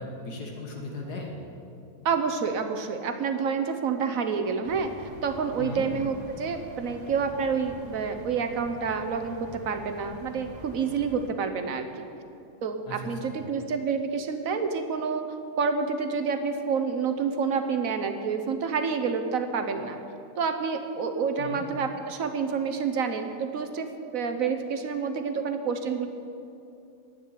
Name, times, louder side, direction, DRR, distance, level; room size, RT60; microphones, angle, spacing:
voice 1, 0.0-1.4 5.6-5.9 12.9-13.4 21.4-21.7, left 2 dB, 85° left, 0 dB, 2.4 m, -37 dB
voice 2, 2.0-4.9 5.2-12.1 12.6-15.2 15.6-20.0 20.4-26.1, right 5 dB, 60° right, 7 dB, 1.2 m, -28 dB
sound 1, 4.6-11.3, right 1 dB, 85° right, 2.2 m, -46 dB
10.5 x 8.4 x 9.5 m, 2.7 s
omnidirectional pair, 1.7 m